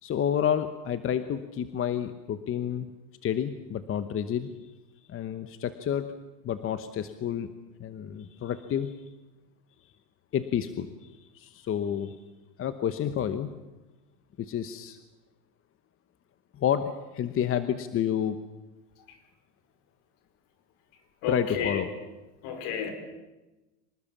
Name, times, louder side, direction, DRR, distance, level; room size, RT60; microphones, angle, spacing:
voice 1, 0.0-2.9 3.2-4.7 5.1-6.1 6.4-7.5 7.8-9.1 10.3-12.2 12.6-13.5 14.4-15.0 16.5-18.4 21.3-21.9, left 9 dB, 30° left, 11 dB, 1.0 m, -30 dB
voice 2, 21.2-21.9 22.4-22.9, left 7 dB, 55° left, 7 dB, 5.1 m, -31 dB
25.5 x 19.5 x 7.4 m, 1.1 s
supercardioid pair, 130°, 47 cm